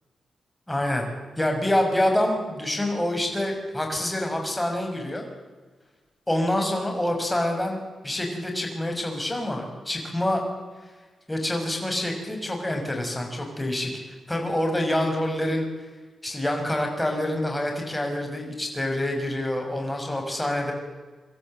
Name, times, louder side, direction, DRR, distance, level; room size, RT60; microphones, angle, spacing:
voice 1, 0.7-1.1 1.4-5.2 6.3-7.8 8.0-10.4 11.3-13.9 14.3-15.7 16.2-20.7, left 1 dB, 10° left, 2 dB, 5.6 m, -26 dB
25.5 x 13.5 x 7.7 m, 1.4 s
cardioid pair, 95°, 0 cm